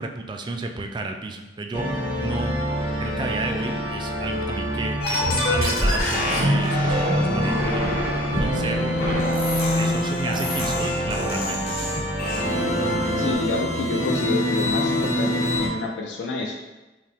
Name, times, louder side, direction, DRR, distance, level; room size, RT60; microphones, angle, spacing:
voice 1, 0.0-2.6 3.0-7.8 8.4-9.4 9.8-12.2, right 3 dB, 25° right, 4 dB, 0.3 m, -32 dB
sound 1, 1.7-13.3, equal, 30° left, 0.8 m, -27 dB
sound 2, 5.0-15.7, left 1 dB, 55° left, 1.1 m, -25 dB
voice 2, 13.2-16.6, left 3 dB, 80° left, 1 dB, 0.4 m, -28 dB
5.4 x 2.0 x 3.4 m, 1.1 s
head